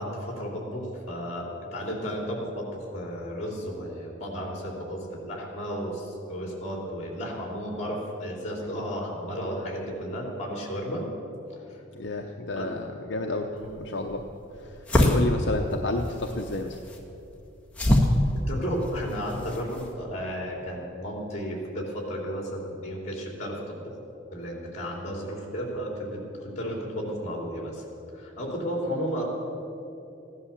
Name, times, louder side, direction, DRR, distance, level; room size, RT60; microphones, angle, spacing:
voice 1, 0.0-1.4 1.7-11.0 11.5-11.8 12.5-12.7 13.5-13.8 18.5-23.8 24.3-27.8 28.1-29.2, equal, 35° left, 0 dB, 3.3 m, -33 dB
voice 2, 11.9-13.5 13.8-14.2 14.6-16.8, left 2 dB, 60° left, 3 dB, 0.8 m, -31 dB
sound 1, 13.6-19.9, left 1 dB, 5° left, 1.6 m, -27 dB
15.5 x 11.0 x 7.3 m, 2.9 s
head